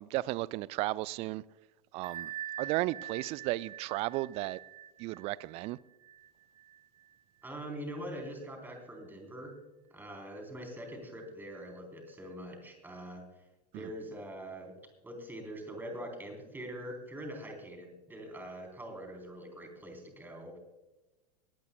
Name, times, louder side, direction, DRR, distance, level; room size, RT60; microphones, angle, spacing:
voice 1, 0.0-1.4 1.9-2.3 2.6-4.6 5.0-5.8 13.7-13.9, right 18 dB, 30° right, 0.4 m, -34 dB
Bell, 2.0-7.5, right 11 dB, 60° right, 3.9 m, -45 dB
voice 2, 7.4-9.6 9.9-13.4 13.7-14.7 15.0-20.6, right 1 dB, 10° right, 3.6 m, -43 dB
21.0 x 16.5 x 2.2 m
figure-of-eight pair, 90°, 21 cm